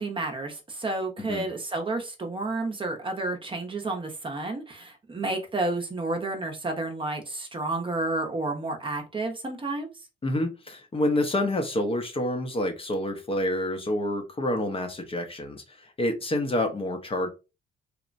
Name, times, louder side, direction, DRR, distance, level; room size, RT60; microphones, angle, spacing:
voice 1, 0.0-9.9, right 2 dB, 25° right, 0.7 m, -31 dB
voice 2, 10.2-17.3, left 1 dB, 30° left, 0.6 m, -28 dB
3.0 x 2.1 x 2.5 m
cardioid pair, 90°, 20 cm